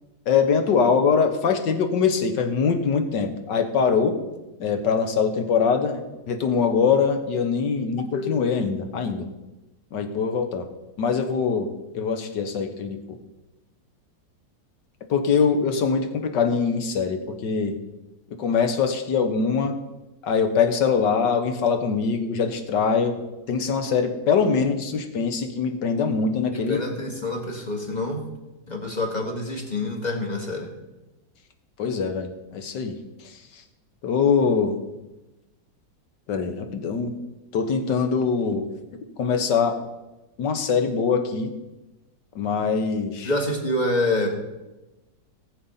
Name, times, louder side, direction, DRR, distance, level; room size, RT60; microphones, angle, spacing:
voice 1, 0.3-4.2 4.6-9.3 9.9-10.7 11.0-13.2 15.1-17.8 18.4-19.8 20.2-23.2 23.5-26.8 31.8-33.0 34.0-34.9 36.3-37.2 37.5-38.7 39.2-39.8 40.4-41.6 42.4-43.3, left 5 dB, 70° left, 7 dB, 1.8 m, -23 dB
voice 2, 26.5-28.2 28.7-30.7 43.2-44.3, left 2 dB, 25° left, 1 dB, 2.0 m, -26 dB
18.0 x 7.1 x 5.6 m, 1.0 s
omnidirectional pair, 2.0 m